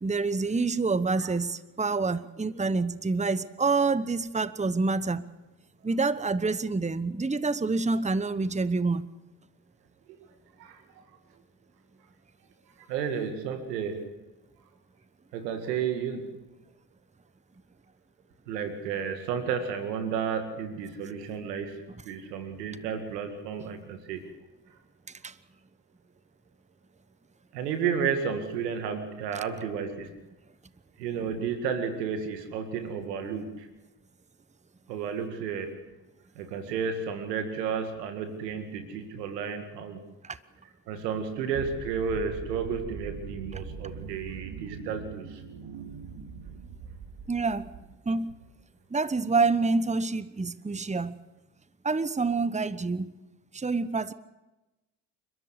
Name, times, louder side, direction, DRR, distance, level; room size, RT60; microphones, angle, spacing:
voice 1, 0.0-5.2 5.8-9.1 25.2-25.3 40.2-40.4 47.3-47.7 48.1-48.3 48.9-51.2 51.8-53.1 53.5-54.1, right 3 dB, 15° right, 15 dB, 1.1 m, -27 dB
voice 2, 12.9-14.1 15.3-16.4 18.5-24.3 27.5-30.1 31.0-33.7 34.9-35.8 36.4-40.0 40.9-45.4, right 6 dB, 90° right, 7 dB, 2.2 m, -32 dB
sound 1, 41.5-48.3, right 5 dB, 65° right, 2.4 m, -42 dB
29.5 x 13.5 x 8.2 m, 1.1 s
hypercardioid pair, 45°, 47 cm